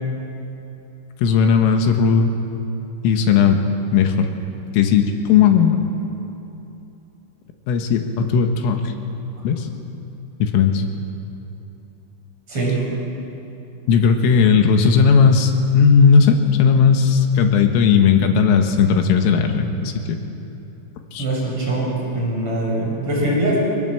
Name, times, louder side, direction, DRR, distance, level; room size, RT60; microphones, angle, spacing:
voice 1, 1.2-2.4 3.0-3.6 3.9-4.3 4.7-5.8 7.7-8.9 9.4-9.7 10.4-10.8 13.9-20.2 21.1-21.3, left 6 dB, 80° left, 5 dB, 3.9 m, -16 dB
voice 2, 12.5-12.8 21.2-23.6, right 2 dB, 25° right, -5 dB, 7.2 m, -22 dB
26.0 x 19.0 x 7.8 m, 2.9 s
omnidirectional pair, 5.9 m